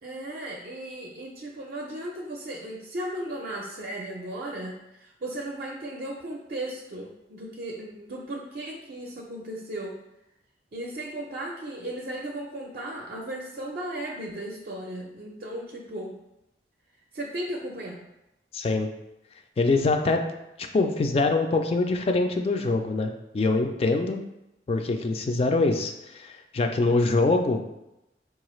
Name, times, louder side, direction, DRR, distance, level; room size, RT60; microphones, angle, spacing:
voice 1, 0.0-10.0 10.7-16.2 17.1-18.0, right 1 dB, 55° right, -2 dB, 0.4 m, -36 dB
voice 2, 18.5-18.9 19.6-20.3 20.6-24.2 24.7-27.8, left 3 dB, 35° left, 5 dB, 0.3 m, -24 dB
4.6 x 2.3 x 3.0 m, 0.91 s
head